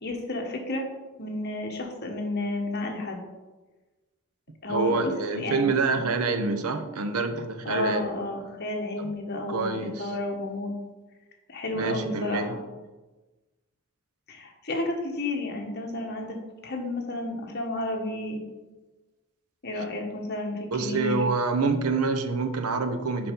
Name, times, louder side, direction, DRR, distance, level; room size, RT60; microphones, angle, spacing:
voice 1, 0.0-0.8 1.2-3.2 4.6-5.1 5.4-5.7 5.9-6.1 7.6-10.7 11.5-12.6 14.3-16.4 16.6-18.4 19.6-21.2, left 2 dB, 45° left, 2 dB, 1.3 m, -31 dB
voice 2, 4.7-8.0 9.0-9.1 9.5-10.2 11.7-12.6 20.7-23.3, right 4 dB, 80° right, 8 dB, 0.8 m, -27 dB
6.9 x 5.4 x 5.3 m, 1.2 s
head